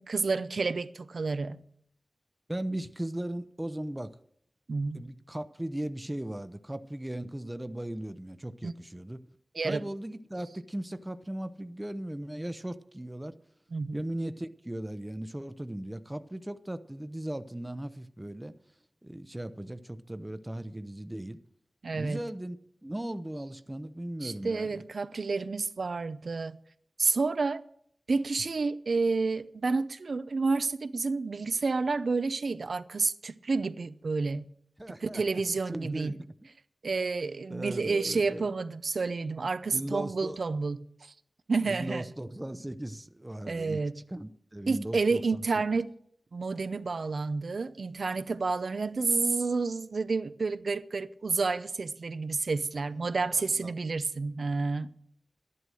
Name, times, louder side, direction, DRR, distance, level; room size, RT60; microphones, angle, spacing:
voice 1, 0.0-1.6 4.7-5.1 8.6-8.7 9.5-9.8 13.7-14.0 21.8-22.2 24.2-26.6 27.0-27.6 28.1-34.4 35.0-36.1 36.8-41.1 41.5-42.0 43.5-44.0 44.7-45.9 46.3-54.9, right 4 dB, 75° right, 0.6 m, -30 dB
voice 2, 2.5-4.2 4.9-9.2 9.6-13.4 13.9-18.6 19.0-21.4 21.9-24.8 34.8-35.2 35.7-36.3 37.5-38.5 39.7-40.4 41.7-45.4 52.9-53.7, right 1 dB, 15° right, 0.7 m, -38 dB
12.0 x 11.0 x 6.3 m
wide cardioid pair, 90°, 0 cm